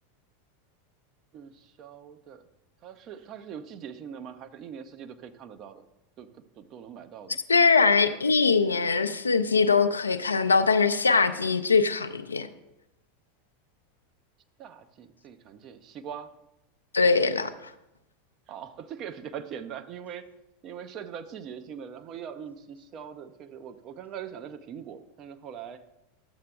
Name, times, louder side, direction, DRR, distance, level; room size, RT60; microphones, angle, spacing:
voice 1, 1.8-2.4 2.8-5.8 6.2-6.3 6.6-7.4 14.6-16.3 18.5-20.3 20.6-25.8, right 8 dB, 40° right, 9 dB, 0.6 m, -41 dB
voice 2, 7.5-12.5 16.9-17.5, left 4 dB, 80° left, 10 dB, 0.4 m, -22 dB
12.0 x 7.4 x 2.3 m, 0.90 s
figure-of-eight pair, 85°, 0 cm